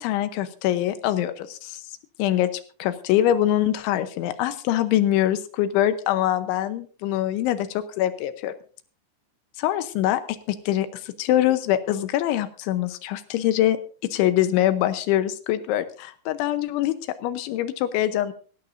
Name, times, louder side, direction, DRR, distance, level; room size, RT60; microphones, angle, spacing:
voice 1, 0.0-1.8 2.2-2.5 2.8-8.5 9.6-10.2 10.5-13.8 14.0-17.0 17.2-18.3, left 12 dB, 85° left, 11 dB, 3.3 m, -24 dB
18.5 x 16.5 x 2.6 m, 0.39 s
omnidirectional pair, 5.3 m